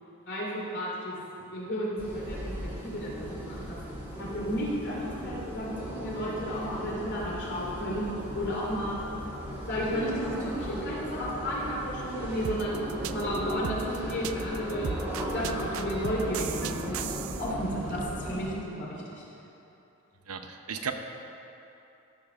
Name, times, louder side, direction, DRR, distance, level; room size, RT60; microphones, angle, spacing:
voice 1, 0.3-3.8 4.2-8.0 8.3-9.0 9.7-15.0 15.3-17.1 17.4-19.2, equal, 50° left, -5 dB, 2.7 m, -33 dB
sound 1, 2.0-18.4, equal, 10° right, 1.5 m, -37 dB
sound 2, 12.4-17.5, right 9 dB, 65° right, 0.3 m, -36 dB
voice 2, 20.3-20.9, right 6 dB, 85° right, 6 dB, 0.8 m, -34 dB
14.0 x 5.1 x 6.3 m, 2.9 s
head